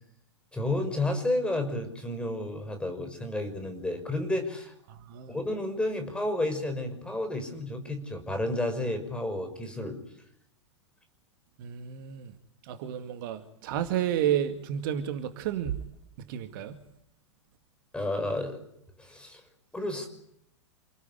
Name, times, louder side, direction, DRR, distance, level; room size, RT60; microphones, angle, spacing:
voice 1, 0.5-4.7 5.3-10.0 17.9-18.6 19.0-19.4 19.7-20.1, left 1 dB, 5° left, 6.0 m, -31 dB
voice 2, 4.9-5.4 11.6-12.4 12.6-15.8 16.2-16.8, right 10 dB, 45° right, 2.2 m, -31 dB
28.5 x 19.0 x 9.8 m
figure-of-eight pair, 95°, 15 cm